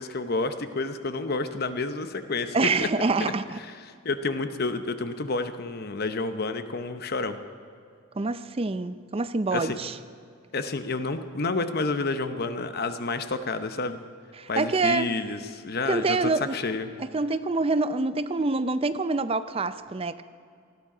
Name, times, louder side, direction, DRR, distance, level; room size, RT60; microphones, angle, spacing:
voice 1, 0.0-2.9 3.6-7.4 9.5-9.8 10.5-14.0 14.5-16.9, left 3 dB, 50° left, 9 dB, 0.8 m, -30 dB
voice 2, 2.5-3.6 8.2-10.0 14.4-15.1 15.9-16.6 17.0-20.2, right 3 dB, 30° right, 12 dB, 0.5 m, -26 dB
19.5 x 13.5 x 5.0 m, 2.3 s
head